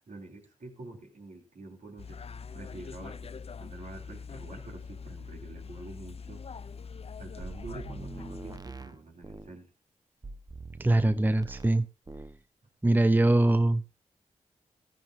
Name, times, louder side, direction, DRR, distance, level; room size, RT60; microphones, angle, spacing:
voice 1, 0.0-2.2 2.5-3.3 3.6-6.5 7.2-9.7, right 2 dB, 70° right, 2 dB, 3.7 m, -46 dB
sound 1, 2.0-8.6, left 5 dB, 50° left, 0.5 m, -43 dB
sound 2, 7.4-9.6 10.2-11.8 12.1-12.4, right 3 dB, 30° right, 1.0 m, -43 dB
voice 2, 10.8-11.9 12.8-13.8, right 2 dB, 15° right, 13 dB, 0.6 m, -23 dB
15.0 x 13.0 x 2.6 m, 0.31 s
cardioid pair, 60°, 13 cm